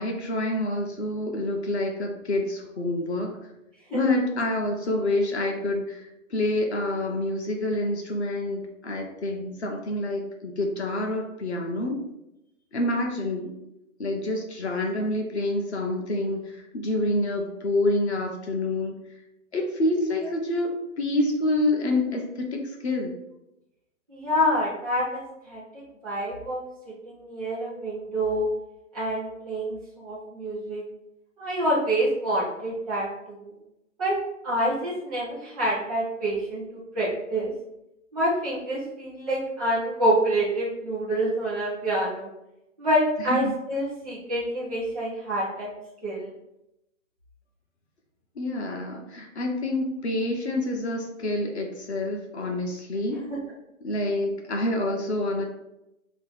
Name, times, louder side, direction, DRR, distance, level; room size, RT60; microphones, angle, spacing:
voice 1, 0.0-3.4 3.9-6.0 6.3-12.0 12.7-13.5 14.0-19.0 19.5-23.2 43.2-43.5 48.4-53.3 53.8-55.4, left 1 dB, 50° left, 2 dB, 0.9 m, -27 dB
voice 2, 24.1-25.2 25.5-26.6 26.8-28.5 28.9-30.8 31.4-33.1 33.4-33.5 34.0-34.2 34.4-37.5 38.1-42.3 42.8-45.7 46.0-46.3 53.3-53.4, equal, ahead, -8 dB, 0.6 m, -27 dB
5.6 x 2.1 x 4.4 m, 0.88 s
hypercardioid pair, 165°, 41 cm